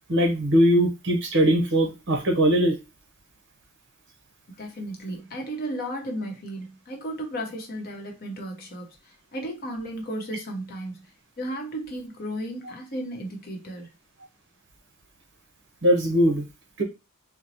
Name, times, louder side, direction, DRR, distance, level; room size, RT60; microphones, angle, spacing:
voice 1, 0.1-2.8 15.8-16.5 16.8-16.9, equal, 55° right, 0.8 m, -20 dB
voice 2, 4.5-11.1 11.4-13.9, right 1 dB, 45° left, 0.9 m, -34 dB
4.0 x 2.1 x 2.8 m
head